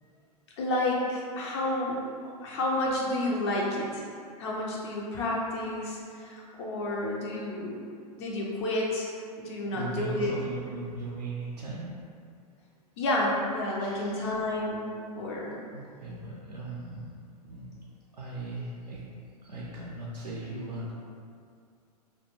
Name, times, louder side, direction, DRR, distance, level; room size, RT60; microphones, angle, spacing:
voice 1, 0.6-4.0 4.4-7.8 8.2-9.1 9.4-10.3 13.0-15.6, left 1 dB, 40° left, -3 dB, 0.4 m, -30 dB
voice 2, 9.7-12.0 13.8-14.3 15.7-17.1 17.4-17.7 18.1-19.2 19.4-20.9, right 2 dB, 80° right, -6 dB, 0.4 m, -38 dB
2.2 x 2.2 x 2.9 m, 2.3 s
figure-of-eight pair, 100°, 21 cm